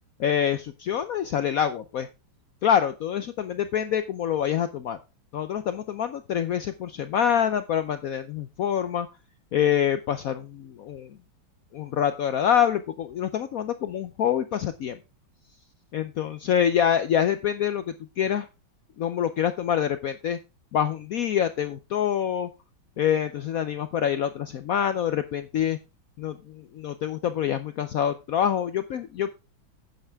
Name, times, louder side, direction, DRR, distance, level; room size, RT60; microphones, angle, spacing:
voice 1, 0.2-2.1 2.6-5.0 5.3-9.1 9.5-11.1 11.7-15.0 15.9-18.5 19.0-20.4 20.7-22.5 23.0-25.8 26.2-29.3, left 9 dB, 85° left, 11 dB, 0.7 m, -26 dB
10.5 x 9.0 x 3.4 m, 0.29 s
omnidirectional pair, 2.2 m